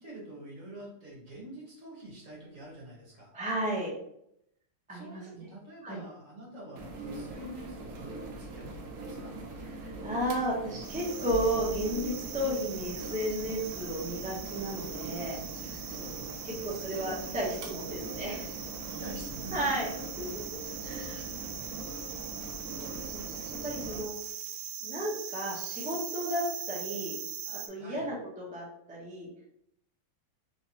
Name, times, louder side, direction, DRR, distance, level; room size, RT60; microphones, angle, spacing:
voice 1, 0.0-3.3 4.9-9.3 15.9-16.5 18.8-19.8 20.6-20.9 21.2-21.6 27.8-28.1, right 1 dB, 50° right, -4 dB, 1.5 m, -47 dB
voice 2, 3.3-3.9 4.9-5.5 5.8-6.0 9.8-15.4 15.7-15.8 16.4-18.5 19.5-19.9 20.2-20.3 20.8-21.3 22.8-23.2 23.6-24.1 24.8-27.2 27.4-29.3, equal, 10° right, -5 dB, 0.5 m, -33 dB
sound 1, 6.8-24.0, right 2 dB, 65° right, 0.8 m, -41 dB
sound 2, 10.8-27.7, right 8 dB, 80° right, 1.2 m, -41 dB
3.3 x 3.2 x 2.8 m, 0.76 s
omnidirectional pair, 1.9 m